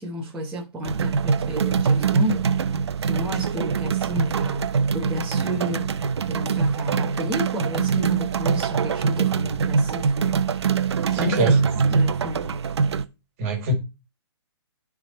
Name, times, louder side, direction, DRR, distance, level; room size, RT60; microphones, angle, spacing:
voice 1, 0.0-2.5 3.0-5.9 6.2-10.4 11.1-12.6, equal, 5° right, 1.0 m, -31 dB
sound 1, 0.8-13.0, right 6 dB, 75° right, 0.7 m, -23 dB
voice 2, 11.1-11.6 13.4-13.7, right 1 dB, 30° right, 1.9 m, -23 dB
10.5 x 3.6 x 4.2 m
hypercardioid pair, 165°, 14 cm